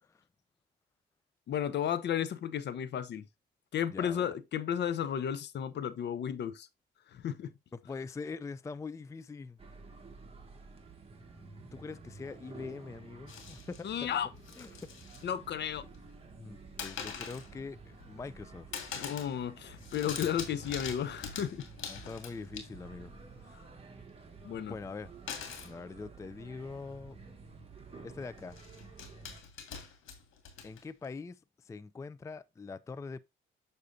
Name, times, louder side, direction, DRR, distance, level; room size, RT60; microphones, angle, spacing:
voice 1, 1.5-3.3 3.7-6.7 7.1-7.5 13.8-14.3 15.2-15.9 19.0-21.7 22.0-22.1 24.4-24.7, left 9 dB, 60° left, 0.7 m, -33 dB
voice 2, 3.9-4.3 7.7-9.6 11.7-14.1 14.6-14.9 16.4-18.7 21.9-23.6 24.6-25.1 25.6-27.2 28.0-28.6 30.6-33.2, left 4 dB, 15° left, 0.3 m, -43 dB
sound 1, 9.6-29.4, right 4 dB, 30° right, 1.7 m, -52 dB
sound 2, 13.3-13.8 14.3-15.3 15.6-16.1 16.8-17.5 17.9-18.4 18.7-19.4 19.6-23.0 25.3-25.7 26.7-26.8 27.1-27.3 28.4-31.1, left 7 dB, 85° left, 2.0 m, -44 dB
6.7 x 6.4 x 2.6 m
cardioid pair, 90°, 20 cm